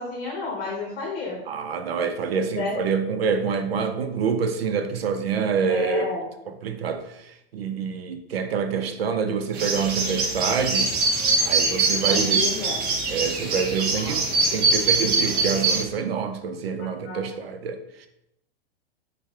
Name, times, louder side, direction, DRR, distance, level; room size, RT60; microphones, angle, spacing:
voice 1, 0.0-1.4 2.4-2.7 5.7-6.3 12.0-12.8 13.9-14.2 16.8-17.2, left 3 dB, 35° left, 0 dB, 1.0 m, -32 dB
voice 2, 1.5-6.1 6.5-10.9 11.4-12.4 13.1-14.2 14.5-18.1, right 6 dB, 70° right, 8 dB, 0.6 m, -26 dB
sound 1, 9.5-15.8, right 3 dB, 30° right, 0.8 m, -23 dB
5.2 x 2.3 x 3.2 m, 0.81 s
figure-of-eight pair, 95°, 32 cm